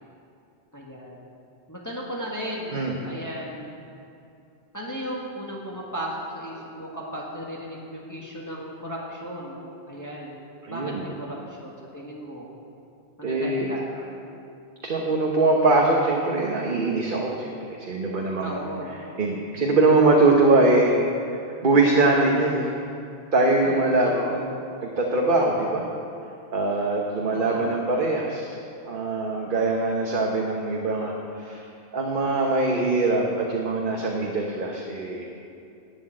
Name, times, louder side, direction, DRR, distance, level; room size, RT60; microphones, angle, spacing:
voice 1, 0.7-1.2 1.7-3.7 4.7-9.6 9.9-10.3 10.7-12.5 13.2-13.9 18.4-19.0 23.6-24.4 27.3-27.7, equal, 15° left, -4 dB, 1.7 m, -35 dB
voice 2, 10.6-11.0 13.2-13.7 14.8-18.6 19.2-20.9 21.6-22.7 23.3-24.4 24.8-25.8 26.5-28.6 28.8-31.6 31.9-35.3, right 2 dB, 50° right, -1 dB, 1.3 m, -22 dB
11.5 x 8.5 x 8.8 m, 2.6 s
omnidirectional pair, 1.1 m